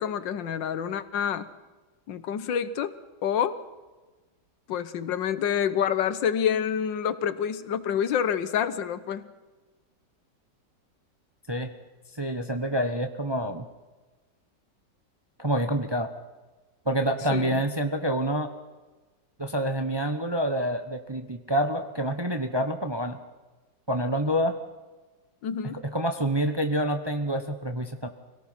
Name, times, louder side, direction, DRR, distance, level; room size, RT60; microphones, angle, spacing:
voice 1, 0.0-1.5 2.1-2.9 3.2-3.6 4.7-9.3 17.3-17.6 25.4-25.8, left 8 dB, 80° left, 13 dB, 1.7 m, -27 dB
voice 2, 12.1-13.7 15.4-16.1 16.9-18.5 19.4-23.2 23.9-24.5 25.7-28.1, right 1 dB, 20° right, 6 dB, 0.7 m, -27 dB
25.0 x 17.5 x 5.8 m, 1.2 s
omnidirectional pair, 2.0 m